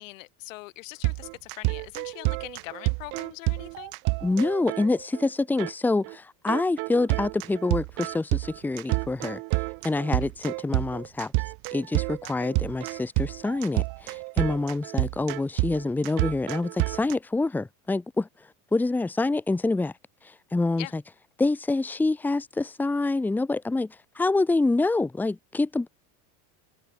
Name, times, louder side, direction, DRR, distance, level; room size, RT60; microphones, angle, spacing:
voice 1, 0.0-3.9 10.2-10.3 12.2-12.5 20.8-20.9, left 20 dB, 90° left, 6.1 m, -42 dB
sound 1, 1.0-5.3 5.6-5.7 6.0-6.2 6.5-17.1, right 33 dB, 35° right, 0.4 m, -29 dB
voice 2, 4.2-9.4 9.8-11.3 11.7-18.3 18.7-19.9 20.5-21.0 21.4-23.9 24.1-25.9, left 2 dB, 5° left, 1.4 m, -26 dB
cardioid pair, 175°, 37 cm